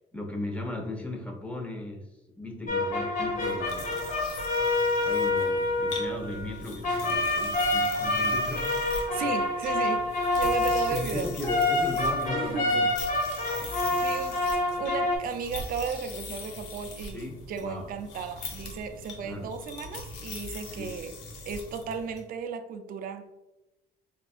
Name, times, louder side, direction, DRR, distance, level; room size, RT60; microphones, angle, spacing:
voice 1, 0.1-2.1 2.4-4.1 5.0-8.8 10.9-12.9 13.6-14.1 17.1-17.9 19.2-19.5 20.7-20.9, left 1 dB, 10° left, 1 dB, 0.7 m, -37 dB
sound 1, 2.7-15.2, left 2 dB, 50° left, 1.3 m, -27 dB
sound 2, 3.4-22.2, left 3 dB, 85° left, 0.6 m, -42 dB
voice 2, 9.1-11.3 12.3-12.9 13.5-13.7 14.0-21.2 21.4-23.3, right 6 dB, 60° right, 7 dB, 0.4 m, -35 dB
4.5 x 2.4 x 2.4 m, 1.0 s
cardioid pair, 110°, 17 cm